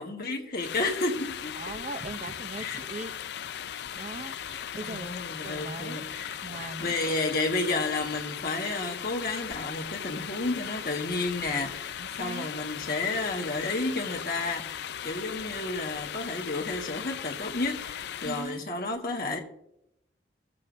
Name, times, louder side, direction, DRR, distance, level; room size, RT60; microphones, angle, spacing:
voice 1, 0.0-1.8 2.6-2.8 4.8-19.4, left 2 dB, 55° left, 1.5 m, -31 dB
sound 1, 0.6-18.6, left 9 dB, 70° left, 0.4 m, -38 dB
voice 2, 1.6-3.1 3.9-6.0 6.4-7.2 12.0-12.5 18.2-18.7, right 2 dB, 40° right, 0.5 m, -40 dB
21.0 x 7.6 x 2.6 m
head